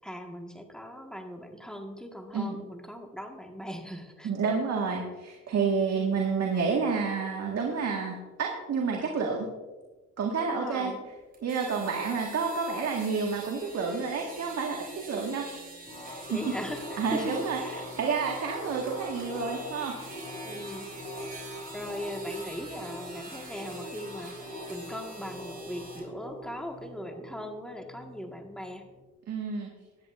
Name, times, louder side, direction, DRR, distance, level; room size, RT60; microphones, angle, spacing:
voice 1, 0.0-4.3 5.9-6.2 10.4-11.0 16.3-17.8 20.4-20.9 21.7-28.8, equal, ahead, 3 dB, 1.7 m, -39 dB
voice 2, 4.2-9.5 10.2-10.9 11.4-15.5 16.2-16.5 17.0-19.9 29.3-29.7, right 5 dB, 60° right, 0 dB, 1.8 m, -29 dB
sound 1, 11.3-26.0, right 3 dB, 30° right, 4.1 m, -46 dB
sound 2, 15.9-29.1, left 1 dB, 20° left, 3.7 m, -43 dB
16.5 x 10.5 x 2.6 m, 1.2 s
cardioid pair, 90°, 30 cm